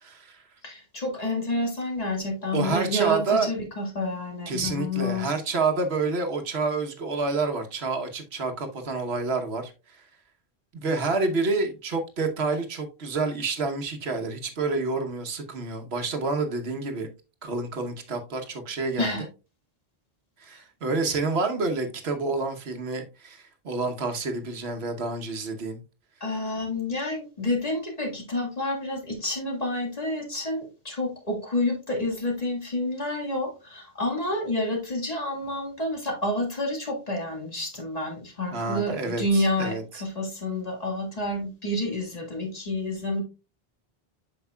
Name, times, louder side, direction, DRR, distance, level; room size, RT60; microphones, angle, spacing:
voice 1, 0.0-0.4 2.5-3.5 4.5-10.0 10.7-17.1 17.4-19.3 20.4-25.8 38.5-39.8, right 3 dB, 80° right, 1.3 m, -28 dB
voice 2, 0.6-5.3 19.0-19.2 20.5-20.6 26.2-39.8 40.0-43.2, left 1 dB, 40° left, 1.8 m, -29 dB
8.0 x 5.8 x 2.2 m
omnidirectional pair, 1.0 m